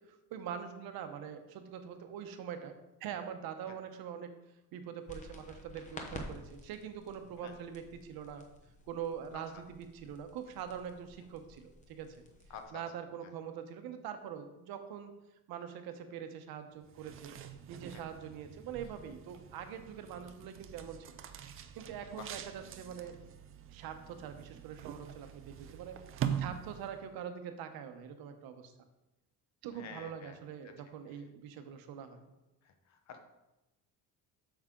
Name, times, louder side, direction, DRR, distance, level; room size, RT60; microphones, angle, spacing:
voice 1, 0.1-2.7 3.0-4.3 4.7-8.4 8.9-12.2 12.7-15.1 15.5-17.4 17.7-21.2 21.8-23.2 23.7-26.0 26.4-28.7 29.6-32.2, right 8 dB, 70° right, 7 dB, 1.0 m, -43 dB
sound 1, 5.1-12.7, left 1 dB, 20° left, 0.8 m, -51 dB
voice 2, 12.5-12.8 17.9-18.0 22.2-22.3 29.7-30.4 30.6-30.7 32.6-33.3, left 6 dB, 45° left, 6 dB, 0.9 m, -49 dB
sound 2, 16.8-27.2, right 9 dB, 35° right, 0.4 m, -43 dB
8.1 x 6.5 x 3.8 m, 0.99 s
cardioid pair, 180°, 37 cm